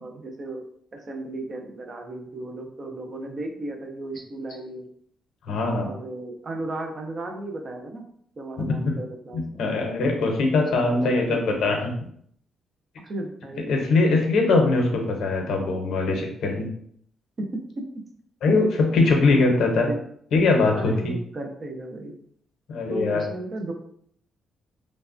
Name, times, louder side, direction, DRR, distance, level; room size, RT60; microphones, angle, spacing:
voice 1, 0.0-0.6 1.1-4.9 5.8-8.0 8.4-9.6 10.8-11.7 13.0-13.8 17.4-17.5 17.8-17.9 19.3-20.0 20.7-22.1 22.9-23.7, right 2 dB, 30° right, 3 dB, 0.4 m, -35 dB
voice 2, 5.5-5.9 9.3-11.9 13.7-16.7 18.4-19.9 20.3-21.1 22.7-23.2, left 3 dB, 65° left, 2 dB, 0.6 m, -21 dB
3.1 x 2.1 x 2.5 m, 0.65 s
cardioid pair, 180°, 0 cm